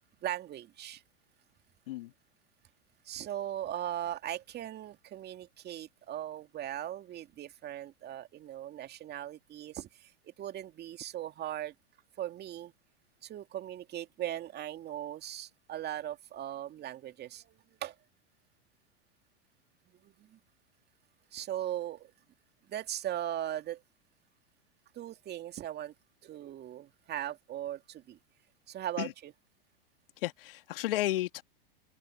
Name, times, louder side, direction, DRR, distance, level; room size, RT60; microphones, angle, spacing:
voice 1, 0.2-1.0 3.0-11.7 12.2-12.7 13.2-17.9 20.0-20.4 21.3-22.1 22.7-23.8 24.9-25.9 26.2-28.2 28.7-29.3, right 12 dB, 35° right, 2.4 m, -39 dB
voice 2, 30.2-31.4, left 15 dB, 70° left, 2.3 m, -32 dB
hypercardioid pair, 100°, 29 cm